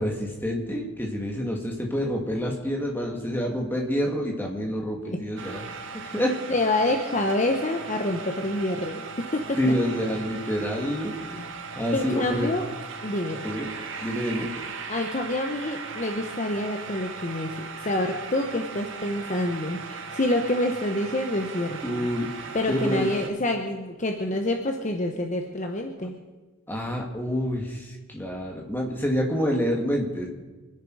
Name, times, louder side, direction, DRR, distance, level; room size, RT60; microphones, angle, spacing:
voice 1, 0.0-5.6 6.0-6.3 9.6-11.4 11.8-12.5 13.4-13.7 14.0-14.5 21.8-23.1 26.0-26.1 26.7-30.3, equal, 10° left, 0 dB, 2.4 m, -27 dB
sound 1, 5.4-23.3, right 5 dB, 65° right, 1.4 m, -38 dB
voice 2, 6.5-9.6 11.9-12.7 13.0-13.4 14.9-22.1 22.5-26.2, left 1 dB, 35° left, 3 dB, 1.0 m, -27 dB
25.5 x 10.5 x 4.8 m, 1.2 s
head